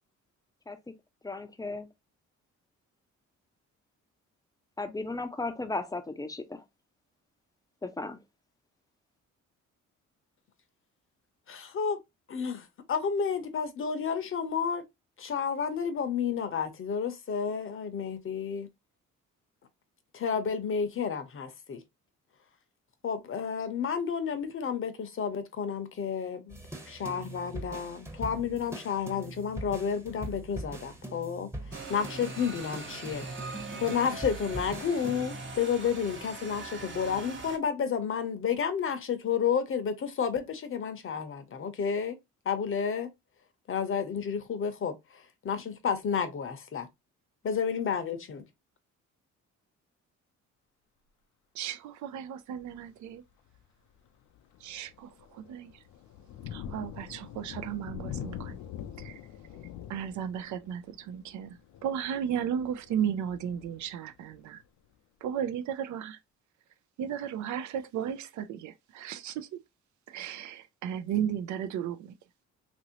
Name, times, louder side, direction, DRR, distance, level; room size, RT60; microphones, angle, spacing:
voice 1, 1.2-1.9 4.8-6.6 7.8-8.2, left 3 dB, 10° left, 0.5 m, -35 dB
voice 2, 11.5-12.0 12.3-14.8 15.2-18.7 20.1-21.8 23.0-26.6 26.8-31.5 31.9-42.2 42.5-43.1 43.7-46.9 47.4-48.4, left 7 dB, 45° left, 0.7 m, -31 dB
sound 1, 26.5-35.6, right 1 dB, 10° right, 0.8 m, -42 dB
sound 2, 31.7-37.6, right 3 dB, 40° right, 0.8 m, -42 dB
voice 3, 51.6-53.2 54.6-55.7 56.5-58.6 59.0-59.2 59.9-61.6 61.8-64.6 65.2-66.2 67.0-69.6 70.1-72.1, right 9 dB, 70° right, 0.5 m, -34 dB
Thunder, 52.6-52.9 53.5-53.6 54.1-64.6, left 9 dB, 80° left, 0.5 m, -44 dB
2.9 x 2.6 x 2.8 m
cardioid pair, 90°, 30 cm